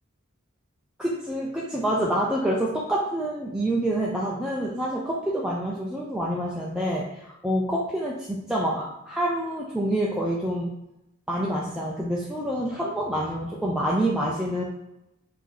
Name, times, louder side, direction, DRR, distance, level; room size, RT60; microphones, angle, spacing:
voice 1, 1.0-10.7 11.3-14.6, right 1 dB, 5° right, -5 dB, 0.5 m, -27 dB
4.6 x 2.7 x 3.9 m, 0.88 s
head